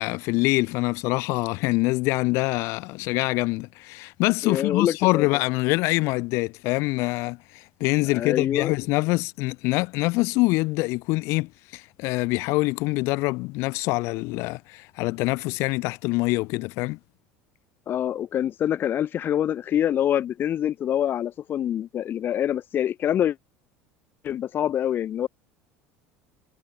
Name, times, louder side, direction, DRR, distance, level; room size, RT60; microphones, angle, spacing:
voice 1, 0.0-17.0, left 23 dB, 65° left, 1.7 m, -25 dB
voice 2, 4.4-5.2 8.1-8.7 17.9-23.3 24.2-25.3, left 10 dB, 45° left, 1.6 m, -25 dB
supercardioid pair, 95°, 5 cm